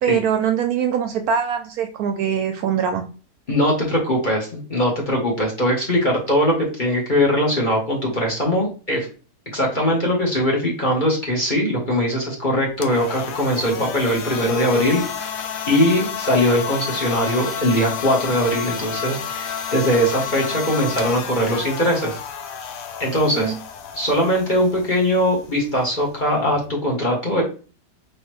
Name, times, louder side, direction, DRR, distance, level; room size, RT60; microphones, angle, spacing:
voice 1, 0.0-3.0 23.4-23.5, right 8 dB, 70° right, 6 dB, 1.0 m, -22 dB
voice 2, 3.5-9.1 9.5-22.2 23.0-23.5 23.9-27.4, equal, 35° left, -2 dB, 1.1 m, -21 dB
sound 1, 12.7-26.7, left 8 dB, 70° left, 0.9 m, -31 dB
4.8 x 3.1 x 3.1 m, 0.36 s
omnidirectional pair, 1.8 m